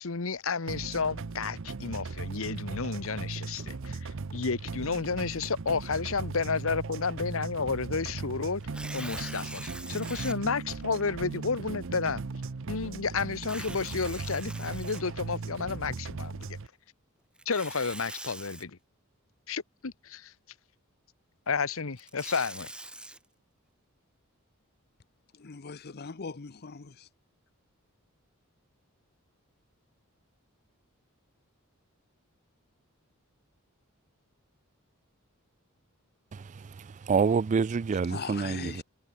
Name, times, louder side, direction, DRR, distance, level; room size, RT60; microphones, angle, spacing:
voice 1, 0.0-12.2 12.7-16.6 17.5-18.8 19.5-20.3 21.5-22.7, left 4 dB, 70° left, 1.1 m, -31 dB
sound 1, 0.7-16.7, right 4 dB, 65° right, 0.7 m, -38 dB
Tearing, 8.6-10.4 11.0-11.1 13.4-15.5 17.4-18.6 21.8-23.2, right 1 dB, 5° right, 1.8 m, -43 dB
voice 2, 25.3-27.1 38.1-38.8, left 5 dB, 50° left, 0.7 m, -40 dB
voice 3, 36.3-38.8, right 5 dB, 35° right, 0.3 m, -28 dB
head